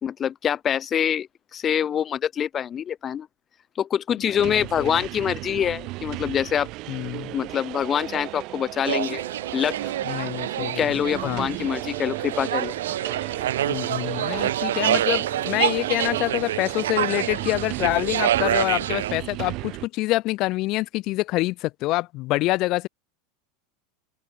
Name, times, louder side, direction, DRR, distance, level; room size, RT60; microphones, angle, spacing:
voice 1, 0.0-1.3 1.5-3.3 3.8-6.7 7.3-9.2 9.5-9.8 10.6-12.7, left 9 dB, 30° left, 1.3 m, -25 dB
voice 2, 4.2-5.0 6.9-7.3 10.0-11.4 13.7-22.9, left 19 dB, 50° left, 1.7 m, -26 dB
sound 1, 4.4-19.9, right 21 dB, 50° right, 2.0 m, -35 dB
sound 2, 8.8-19.1, right 12 dB, 90° right, 1.6 m, -27 dB
open air
supercardioid pair, 120°, 0 cm